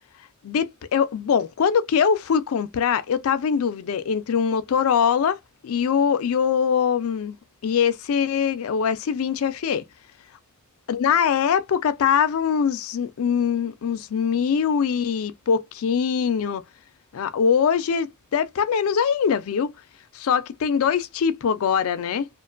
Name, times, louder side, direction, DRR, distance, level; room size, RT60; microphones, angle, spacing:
voice 1, 0.4-7.4 7.6-9.8 10.9-16.6 17.1-19.7 20.1-22.3, left 7 dB, 75° left, 0.4 m, -22 dB
2.5 x 2.2 x 2.4 m
head